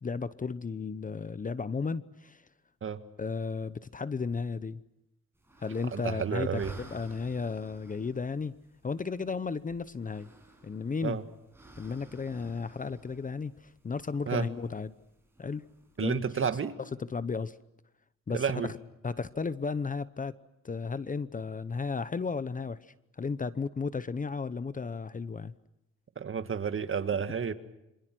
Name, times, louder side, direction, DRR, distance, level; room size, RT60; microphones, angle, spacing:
voice 1, 0.0-2.4 3.2-4.8 5.6-8.5 8.8-10.3 10.6-11.2 11.8-14.9 15.4-15.6 16.0-16.2 17.0-17.6 18.3-18.7 19.0-20.4 20.6-22.9 23.2-25.5, left 4 dB, 25° left, 15 dB, 0.9 m, -34 dB
sound 1, 5.4-16.0, right 2 dB, 10° right, 7.7 m, -55 dB
voice 2, 5.9-6.7 11.0-11.2 14.3-14.5 16.0-16.7 18.3-18.7 26.2-27.5, right 7 dB, 45° right, 9 dB, 1.9 m, -31 dB
27.5 x 26.0 x 6.1 m, 0.89 s
cardioid pair, 90°, 30 cm